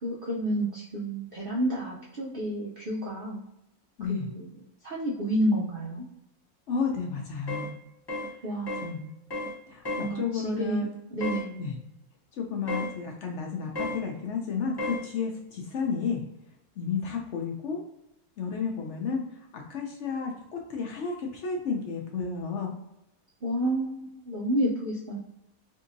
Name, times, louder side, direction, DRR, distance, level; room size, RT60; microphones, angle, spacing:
voice 1, 0.0-3.4 4.1-4.5 4.8-6.1 8.4-9.1 10.0-11.6 23.4-25.2, right 1 dB, 65° right, -3 dB, 0.5 m, -30 dB
voice 2, 4.0-4.3 6.7-7.7 8.8-9.1 9.7-9.8 10.1-10.9 11.6-11.8 12.3-16.2 16.8-17.8 18.4-22.7, left 5 dB, 65° left, 0 dB, 0.7 m, -32 dB
sound 1, 7.5-7.7 8.1-8.3 8.7-8.9 9.3-9.6 9.8-10.1 11.2-11.5 12.7-12.9 13.8-14.0 14.8-15.0, left 2 dB, 25° left, 0.6 m, -32 dB
3.6 x 2.7 x 2.6 m, 0.86 s
omnidirectional pair, 1.6 m